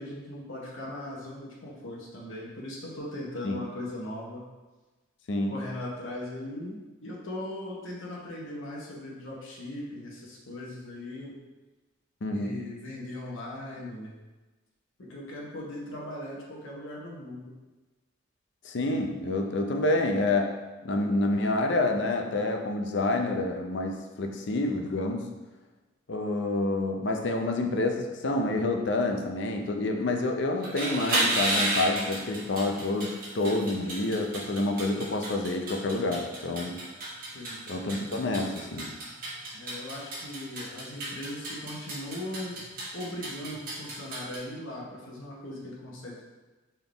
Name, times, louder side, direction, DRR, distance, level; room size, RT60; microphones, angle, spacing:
voice 1, 0.0-4.4 5.5-11.3 12.3-14.2 15.1-17.5 37.3-37.7 39.5-42.6 42.9-46.2, left 1 dB, 75° left, -3 dB, 1.0 m, -39 dB
voice 2, 12.2-12.5 18.6-20.6 20.8-25.3 26.1-36.8 37.7-38.9, left 2 dB, 60° left, 4 dB, 0.5 m, -28 dB
sound 1, 30.5-44.4, right 1 dB, 45° right, 1.2 m, -33 dB
4.4 x 3.6 x 3.3 m, 1.2 s
head